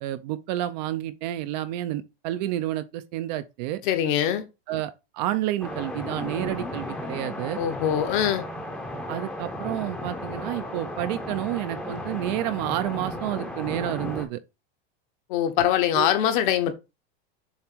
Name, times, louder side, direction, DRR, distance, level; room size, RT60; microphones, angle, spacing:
voice 1, 0.0-3.8 4.7-7.6 9.1-14.4 16.0-16.1, right 13 dB, 45° right, 0.5 m, -30 dB
voice 2, 3.8-4.5 7.6-8.4 15.3-16.7, left 10 dB, 50° left, 1.1 m, -23 dB
sound 1, 5.6-14.2, left 1 dB, 5° left, 0.7 m, -34 dB
7.1 x 3.0 x 4.4 m
supercardioid pair, 165°, 32 cm